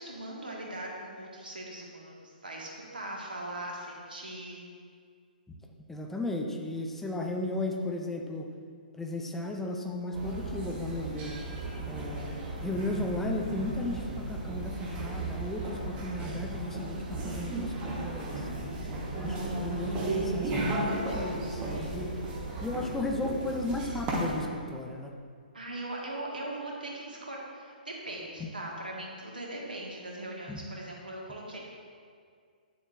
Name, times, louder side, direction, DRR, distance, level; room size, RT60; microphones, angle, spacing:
voice 1, 0.0-4.6 18.5-19.1 21.7-22.0 25.5-31.6, right 1 dB, 70° right, -2 dB, 1.6 m, -40 dB
voice 2, 5.9-8.5 8.9-11.4 11.9-18.5 19.1-22.1 22.6-25.1 28.4-28.5 30.5-30.6, left 1 dB, 5° left, 2 dB, 0.5 m, -35 dB
sound 1, 10.1-24.4, right 2 dB, 20° right, 1.1 m, -35 dB
9.1 x 6.9 x 2.5 m, 2.1 s
figure-of-eight pair, 125°, 5 cm